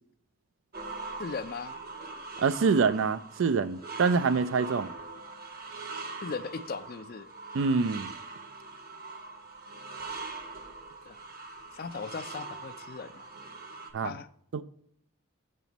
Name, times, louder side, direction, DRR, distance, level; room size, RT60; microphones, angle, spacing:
sound 1, 0.7-13.9, right 3 dB, 45° right, 0.9 m, -42 dB
voice 1, 1.2-1.8 6.2-7.3 11.1-11.2 11.7-13.3 14.0-14.3, left 5 dB, 45° left, 0.4 m, -38 dB
voice 2, 2.4-4.9 7.5-8.1 13.9-14.1 14.5-14.6, right 5 dB, 65° right, 0.4 m, -26 dB
7.5 x 5.9 x 4.0 m
head